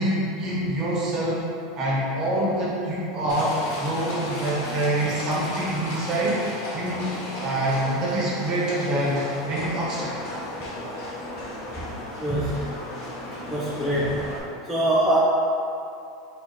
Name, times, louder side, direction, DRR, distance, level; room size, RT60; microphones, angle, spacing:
voice 1, 0.0-1.4 1.8-6.4 6.7-10.2, right 1 dB, 30° right, -6 dB, 1.3 m, -26 dB
Livestock farm animals working animals, 3.3-14.4, left 1 dB, 65° left, 1.1 m, -35 dB
voice 2, 12.2-12.6 13.5-14.2 14.7-15.2, right 1 dB, ahead, -9 dB, 0.6 m, -23 dB
4.1 x 2.8 x 4.2 m, 2.6 s
supercardioid pair, 125°, 2 cm